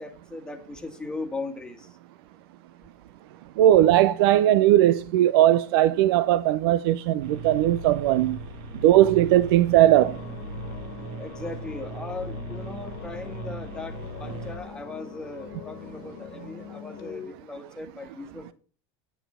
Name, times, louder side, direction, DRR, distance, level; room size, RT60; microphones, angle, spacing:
voice 1, 0.0-1.9 11.2-18.5, left 3 dB, 5° left, 1.6 m, -38 dB
voice 2, 3.6-8.4 8.8-10.2, right 13 dB, 80° right, 0.5 m, -19 dB
sound 1, 7.2-14.6, right 3 dB, 65° right, 2.7 m, -38 dB
sound 2, 9.9-17.3, left 9 dB, 75° left, 1.7 m, -42 dB
9.2 x 8.9 x 4.3 m
supercardioid pair, 135°, 12 cm